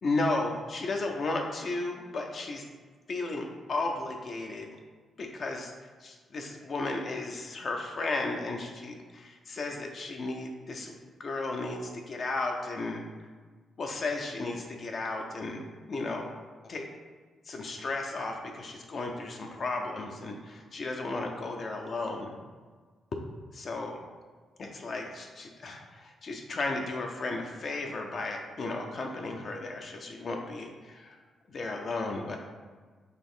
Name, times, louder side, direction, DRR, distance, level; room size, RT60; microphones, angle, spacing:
voice 1, 0.0-2.6 3.1-4.7 5.2-5.7 6.0-10.9 11.2-13.0 13.8-15.6 15.9-16.3 16.6-16.9 17.5-22.4 23.5-24.0 24.6-31.2 31.5-32.4, left 2 dB, 50° left, 2 dB, 0.4 m, -34 dB
4.0 x 2.5 x 3.6 m, 1.5 s
cardioid pair, 105°, 0 cm